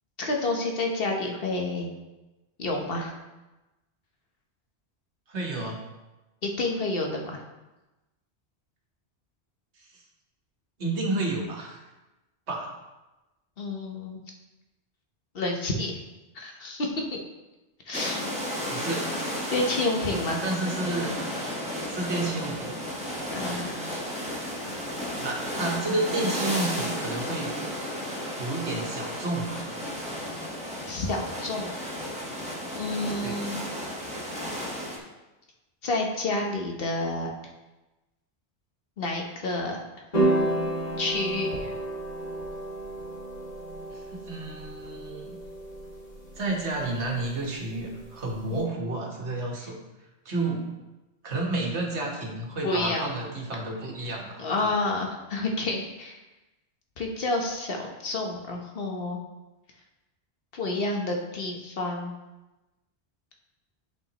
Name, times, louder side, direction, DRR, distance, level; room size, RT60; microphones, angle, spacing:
voice 1, 0.2-1.9 2.6-3.2 6.4-7.4 13.6-14.2 15.3-16.0 16.3-17.0 17.9-18.3 19.5-20.4 23.3-23.9 30.9-31.7 32.7-33.5 35.8-37.3 39.0-39.8 41.0-41.7 48.5-48.6 49.6-49.7 52.6-53.1 54.4-56.2 57.0-59.2 60.5-62.1, left 2 dB, 60° left, 1 dB, 1.2 m, -29 dB
voice 2, 5.3-5.8 10.8-11.8 12.5-12.7 18.7-19.1 20.4-21.1 21.9-22.8 25.2-27.5 28.4-29.7 33.2-33.4 43.9-45.4 46.4-49.8 50.2-50.7 51.2-54.7, right 2 dB, 90° right, -1 dB, 1.7 m, -31 dB
sound 1, 17.9-35.0, equal, 5° right, 1.2 m, -33 dB
sound 2, 40.1-48.6, right 1 dB, 40° left, 1.8 m, -31 dB
11.0 x 5.1 x 3.0 m, 1.1 s
omnidirectional pair, 1.1 m